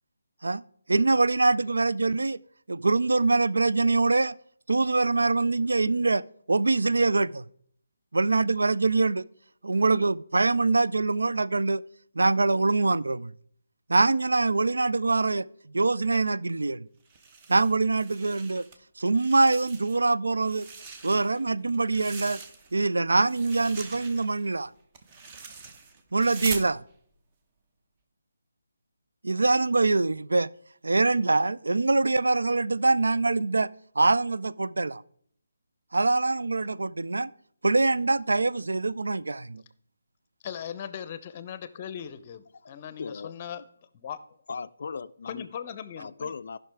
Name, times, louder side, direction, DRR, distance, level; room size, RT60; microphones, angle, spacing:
voice 1, 0.9-2.4 2.7-4.3 4.7-7.4 8.1-9.2 9.6-11.8 12.2-13.3 13.9-15.5 15.7-16.9 17.5-18.6 19.0-20.7 21.0-22.4 22.7-24.7 26.1-26.8 29.2-30.5 30.8-33.7 34.0-35.0 35.9-37.3 37.6-39.6, right 3 dB, 75° right, 0.3 m, -24 dB
sound 1, 17.1-18.8 19.1-20.1 20.4-22.9 23.2-26.7, right 4 dB, 25° right, 0.9 m, -42 dB
voice 2, 40.4-43.6 43.9-44.2 45.3-46.3, left 8 dB, 30° left, 0.7 m, -39 dB
voice 3, 42.6-43.3 44.5-45.5 46.0-46.6, left 5 dB, 55° left, 0.3 m, -38 dB
15.0 x 5.8 x 3.5 m
figure-of-eight pair, 150°, 0 cm